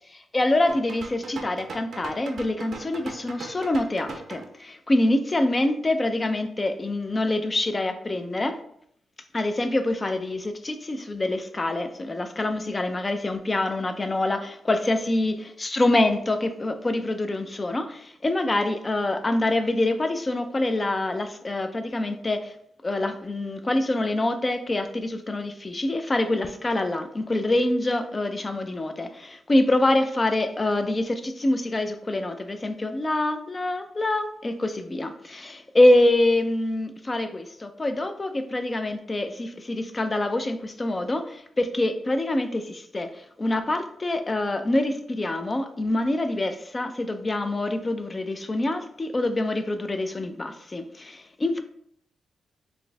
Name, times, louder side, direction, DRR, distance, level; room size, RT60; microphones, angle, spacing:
voice 1, 0.1-8.6 9.3-22.5 22.8-51.6, left 1 dB, 20° left, 8 dB, 0.3 m, -25 dB
sound 1, 0.7-4.4, right 4 dB, 50° right, 0.5 m, -40 dB
4.0 x 2.6 x 3.3 m, 0.70 s
wide cardioid pair, 160°, 0 cm